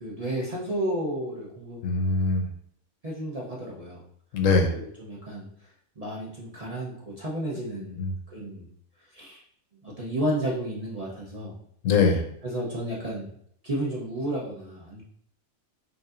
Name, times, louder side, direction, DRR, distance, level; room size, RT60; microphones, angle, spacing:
voice 1, 0.0-1.8 3.0-4.0 4.7-5.5 6.0-8.7 9.1-9.4 9.8-11.5 12.4-13.3 13.6-15.0, right 1 dB, 35° right, -5 dB, 0.7 m, -32 dB
voice 2, 1.8-2.5 4.3-4.7 8.0-8.1 11.8-12.2, left 4 dB, 70° left, 3 dB, 1.0 m, -22 dB
4.9 x 2.6 x 2.5 m, 0.67 s
omnidirectional pair, 1.4 m